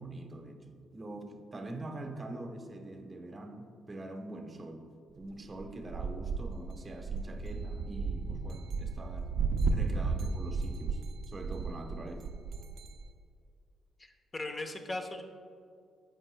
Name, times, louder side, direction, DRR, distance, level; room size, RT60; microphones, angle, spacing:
voice 1, 0.0-9.3 9.7-12.3, right 2 dB, 30° right, 5 dB, 0.9 m, -44 dB
sound 1, 5.6-13.1, right 4 dB, 75° right, 0.5 m, -34 dB
voice 2, 14.0-15.2, left 2 dB, 30° left, 4 dB, 0.8 m, -38 dB
15.5 x 5.4 x 2.2 m, 2.3 s
cardioid pair, 90°, 0 cm